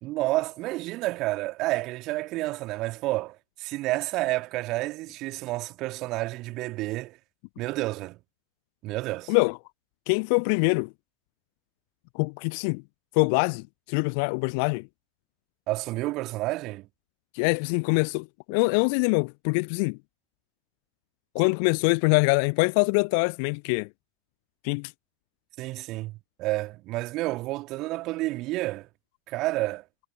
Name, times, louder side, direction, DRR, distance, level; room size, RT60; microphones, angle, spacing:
voice 1, 0.0-7.2 7.6-8.2 8.8-9.3 15.7-16.9 25.6-28.9 29.3-29.8, right 19 dB, 40° right, 2.2 m, -30 dB
voice 2, 10.1-10.9 12.1-12.8 13.2-14.8 17.3-20.0 21.3-23.9 24.6-24.9, left 35 dB, 45° left, 0.4 m, -24 dB
figure-of-eight pair, 90°, 0 cm